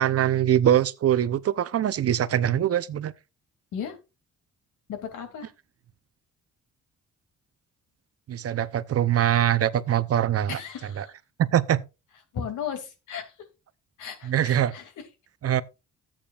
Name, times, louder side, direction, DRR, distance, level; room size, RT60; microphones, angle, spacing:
voice 1, 0.0-3.1 8.3-10.6 11.0-11.1 11.4-11.8 14.2-14.7 15.4-15.6, right 11 dB, 50° right, 0.8 m, -23 dB
voice 2, 4.9-5.5 10.5-11.1 12.3-13.3 14.0-14.8, left 7 dB, 80° left, 2.7 m, -35 dB
13.0 x 8.8 x 2.5 m
cardioid pair, 90°, 30 cm